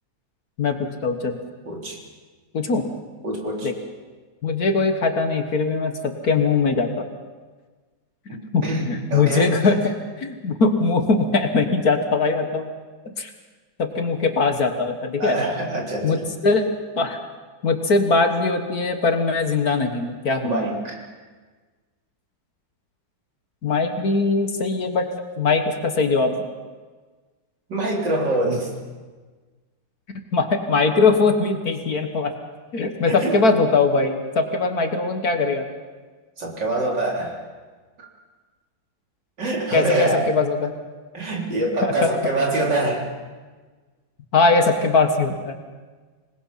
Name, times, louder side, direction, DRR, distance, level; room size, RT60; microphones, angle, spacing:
voice 1, 0.6-1.4 2.5-2.8 3.6-3.7 4.4-7.0 8.5-9.8 10.2-12.7 13.2-13.3 13.8-15.4 16.0-16.2 16.4-16.7 17.0-17.2 17.6-20.6 23.6-25.1 25.4-26.4 30.3-32.3 32.7-35.7 39.7-40.7 41.8-42.1 44.3-45.6, left 4 dB, 55° left, 6 dB, 1.8 m, -21 dB
voice 2, 1.7-2.0 3.2-3.7 8.3-9.8 15.2-16.2 20.4-21.0 27.7-28.7 33.1-33.4 36.4-37.4 38.0-38.1 39.4-40.2 41.1-43.0, right 2 dB, 65° right, -2 dB, 4.4 m, -25 dB
26.0 x 20.0 x 5.7 m, 1.4 s
omnidirectional pair, 2.1 m